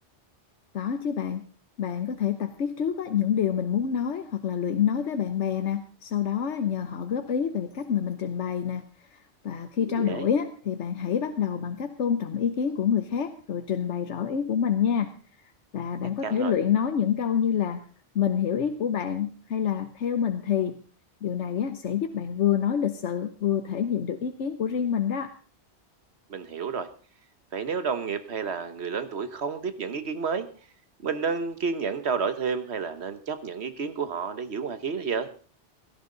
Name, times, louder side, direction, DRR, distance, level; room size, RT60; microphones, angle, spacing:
voice 1, 0.7-1.4 1.8-15.1 15.7-17.8 18.1-20.8 21.2-25.3, left 8 dB, 85° left, 7 dB, 1.2 m, -27 dB
voice 2, 9.9-10.3 16.2-16.5 26.3-26.9 27.5-30.5 31.0-35.3, right 5 dB, 70° right, 10 dB, 1.4 m, -30 dB
17.0 x 13.0 x 3.9 m, 0.40 s
omnidirectional pair, 1.2 m